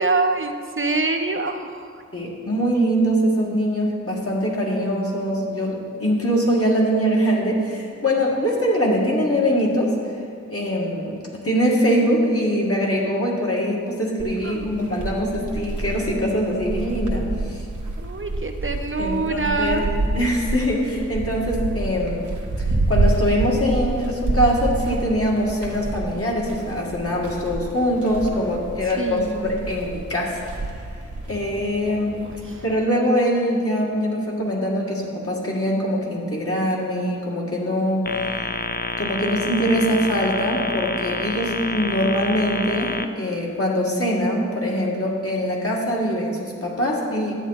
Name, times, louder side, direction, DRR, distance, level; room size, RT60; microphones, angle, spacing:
voice 1, 0.0-1.9 14.4-14.7 18.0-19.9 29.0-29.7 32.4-32.6, right 3 dB, 45° right, 5 dB, 0.6 m, -25 dB
voice 2, 2.1-9.9 10.5-11.2 11.4-17.6 19.0-19.8 20.1-22.3 22.6-30.7 31.3-32.1 32.6-38.1 38.3-38.4 39.0-47.4, equal, 50° left, -4 dB, 2.0 m, -23 dB
sound 1, 14.2-32.7, right 2 dB, 85° right, 1.2 m, -28 dB
sound 2, 38.1-43.0, left 3 dB, 35° left, 0.5 m, -28 dB
11.0 x 8.5 x 4.1 m, 2.2 s
wide cardioid pair, 65°, 29 cm